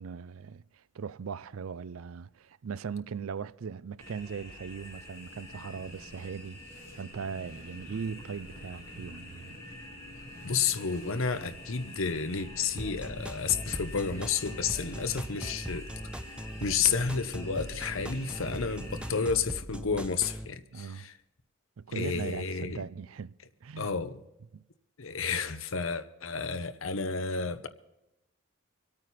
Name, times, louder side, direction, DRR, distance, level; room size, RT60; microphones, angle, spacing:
voice 1, 0.0-9.6 20.7-21.1 21.8-23.4 23.6-23.9 24.5-24.6, right 6 dB, 90° right, 0.4 m, -39 dB
sound 1, 4.0-19.3, left 1 dB, 15° left, 5.9 m, -46 dB
voice 2, 10.4-15.9 16.6-21.1 21.9-22.8 23.8-24.2 25.0-27.7, left 5 dB, 75° left, 0.9 m, -31 dB
sound 2, 12.8-20.5, equal, 5° right, 0.5 m, -40 dB
25.5 x 8.9 x 4.2 m
head